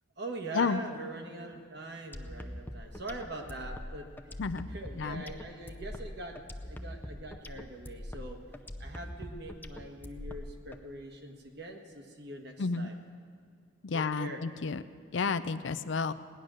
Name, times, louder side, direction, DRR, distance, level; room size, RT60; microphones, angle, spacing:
voice 1, 0.2-4.4 4.7-8.4 8.8-13.0 13.9-14.4, right 1 dB, 55° right, 3 dB, 1.6 m, -43 dB
sound 1, 2.1-10.8, left 1 dB, 10° left, 0.5 m, -43 dB
voice 2, 12.6-12.9 13.8-14.8 15.1-16.1, left 4 dB, 65° left, 13 dB, 0.5 m, -31 dB
18.0 x 10.5 x 6.4 m, 2.3 s
head